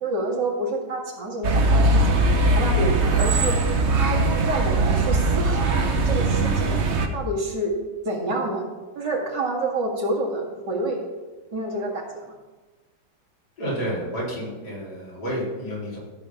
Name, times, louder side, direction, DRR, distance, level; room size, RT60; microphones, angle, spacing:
voice 1, 0.0-2.1 2.5-3.6 4.0-5.6 6.1-6.8 7.1-7.8 8.0-8.6 9.0-11.0 11.5-12.3, right 2 dB, 80° right, -1 dB, 2.8 m, -28 dB
sound 1, 1.4-7.1, right 2 dB, 45° right, 1.1 m, -20 dB
voice 2, 13.6-16.0, equal, 65° left, -6 dB, 4.7 m, -30 dB
14.0 x 5.0 x 7.2 m, 1.2 s
omnidirectional pair, 1.9 m